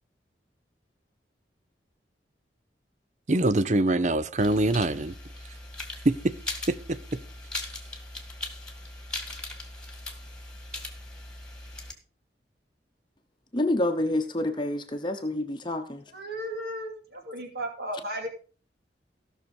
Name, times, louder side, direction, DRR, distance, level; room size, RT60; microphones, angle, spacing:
voice 1, 3.3-5.1 6.0-6.3 6.7-7.2, right 2 dB, 40° right, 0.7 m, -24 dB
sound 1, 4.4-11.9, left 2 dB, 5° left, 2.2 m, -39 dB
voice 2, 13.5-16.0, left 1 dB, 25° left, 1.0 m, -28 dB
voice 3, 16.1-18.3, right 1 dB, 60° right, 2.7 m, -35 dB
16.5 x 6.4 x 5.3 m
head